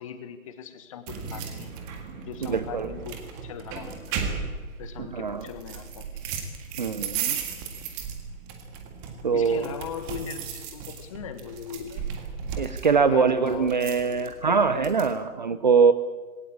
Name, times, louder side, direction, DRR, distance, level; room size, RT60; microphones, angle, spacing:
voice 1, 0.0-1.8 2.2-3.2 3.4-4.3 4.8-6.2 9.3-12.1 13.0-13.8 14.1-14.6 15.0-15.1, left 8 dB, 25° left, 10 dB, 1.4 m, -40 dB
sound 1, 1.1-15.1, right 6 dB, 15° right, 1.7 m, -36 dB
voice 2, 2.5-2.9 5.0-5.5 6.8-7.4 9.2-9.7 12.6-15.9, right 5 dB, 30° right, 12 dB, 0.7 m, -23 dB
20.5 x 18.0 x 8.7 m, 1.4 s
figure-of-eight pair, 140°, 44 cm